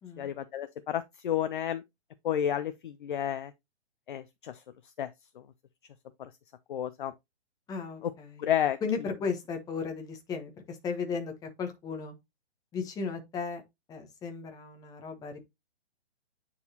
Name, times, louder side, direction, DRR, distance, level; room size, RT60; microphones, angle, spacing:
voice 1, 0.2-1.8 2.2-3.5 4.1-5.4 6.2-6.3 6.7-7.1 8.0-8.1 8.4-8.8, left 10 dB, 45° left, 0.6 m, -31 dB
voice 2, 7.7-8.4 8.8-12.1 12.7-13.6 13.9-15.4, left 5 dB, 10° left, 1.2 m, -35 dB
9.4 x 4.1 x 2.9 m
figure-of-eight pair, 135°, 34 cm